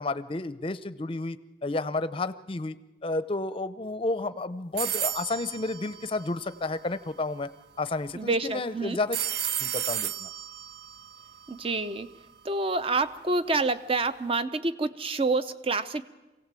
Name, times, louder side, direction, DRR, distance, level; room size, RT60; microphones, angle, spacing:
voice 1, 0.0-1.4 1.6-7.5 7.8-9.2 9.5-10.3, left 2 dB, 30° left, 13 dB, 0.6 m, -31 dB
sound 1, 4.8-6.8 9.1-12.2, right 10 dB, 65° right, 0.6 m, -33 dB
voice 2, 8.1-9.0 11.5-12.1 12.4-16.0, right 3 dB, 30° right, 12 dB, 0.7 m, -28 dB
24.5 x 16.5 x 7.6 m, 1.1 s
head